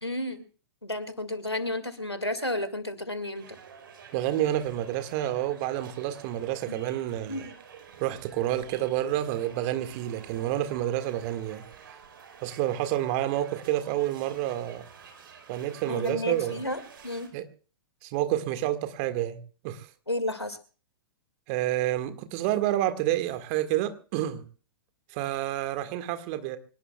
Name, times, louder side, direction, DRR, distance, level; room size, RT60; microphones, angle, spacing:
voice 1, 0.0-0.4 0.8-3.5 6.7-6.8 7.3-7.5 15.9-17.3 20.1-20.6, left 1 dB, 90° left, 2.2 m, -32 dB
sound 1, 3.4-17.3, right 7 dB, 60° right, 4.6 m, -50 dB
voice 2, 4.1-7.4 8.0-11.6 12.4-14.8 15.5-16.6 17.3-17.5 18.0-19.4 19.6-19.9 21.5-24.4 25.1-26.6, right 13 dB, 40° right, 1.8 m, -29 dB
25.5 x 18.5 x 2.3 m
figure-of-eight pair, 105°, 13 cm